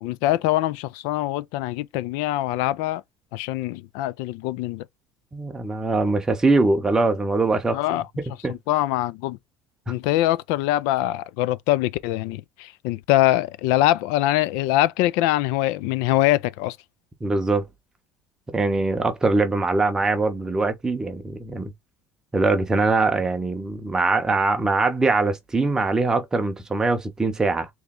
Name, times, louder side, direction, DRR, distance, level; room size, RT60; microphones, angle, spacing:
voice 1, 0.0-3.0 3.3-4.9 7.7-8.1 8.5-9.4 9.9-16.8, left 15 dB, 80° left, 0.3 m, -23 dB
voice 2, 5.3-7.8 8.4-8.5 17.2-17.7 18.5-21.7 22.3-27.7, right 3 dB, 10° right, 0.7 m, -22 dB
3.3 x 3.0 x 3.7 m
cardioid pair, 170°, 5 cm